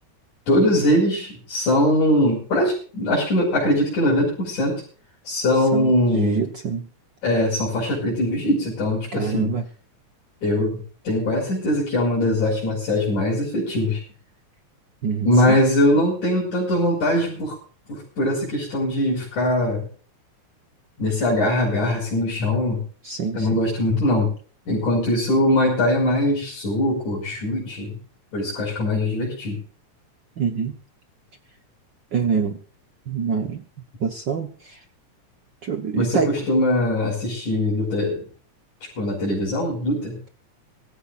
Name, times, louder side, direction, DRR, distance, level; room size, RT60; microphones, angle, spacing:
voice 1, 0.5-4.8 5.3-6.5 7.2-9.5 10.4-14.0 15.2-17.6 17.9-19.9 21.0-22.8 23.3-24.3 24.7-28.0 28.3-29.6 35.9-38.2 39.0-40.2, left 1 dB, 70° left, -5 dB, 7.0 m, -21 dB
voice 2, 5.7-6.9 9.1-9.6 15.0-15.6 23.0-23.6 30.4-30.7 32.1-32.6 33.1-33.6 34.0-34.8 35.6-36.3, right 6 dB, 70° right, 6 dB, 1.0 m, -25 dB
24.5 x 14.5 x 2.5 m, 0.40 s
omnidirectional pair, 3.6 m